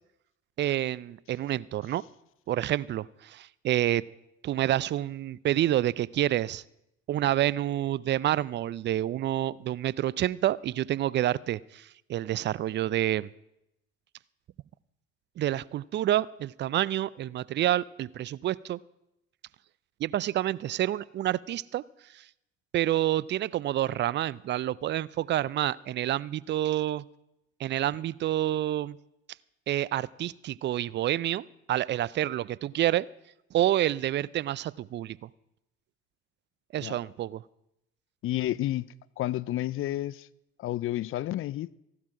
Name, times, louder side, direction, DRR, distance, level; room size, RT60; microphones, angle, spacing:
voice 1, 0.6-2.0 2.5-4.0 4.4-6.6 7.1-13.3 15.4-18.8 20.0-21.8 22.1-22.2 22.7-27.0 27.6-29.0 29.7-33.1 33.5-35.3 36.7-37.4, right 13 dB, 35° right, 0.4 m, -28 dB
voice 2, 38.2-38.9 39.2-40.3 40.6-41.8, left 14 dB, 40° left, 0.4 m, -30 dB
14.5 x 12.0 x 4.8 m
hypercardioid pair, 65°, 32 cm